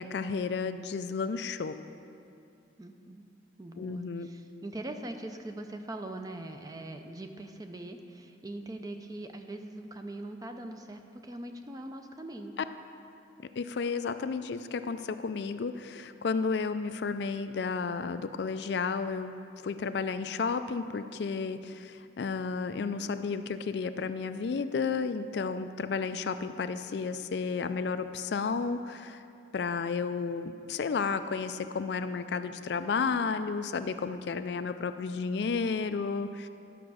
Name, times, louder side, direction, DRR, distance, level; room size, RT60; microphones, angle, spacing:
voice 1, 0.0-1.8 3.8-4.3 13.6-19.3 19.6-29.2 29.5-36.5, left 5 dB, 65° left, 10 dB, 0.4 m, -32 dB
voice 2, 2.8-3.3 3.6-12.5, right 1 dB, 20° right, 5 dB, 0.6 m, -42 dB
11.5 x 5.9 x 6.2 m, 2.5 s
head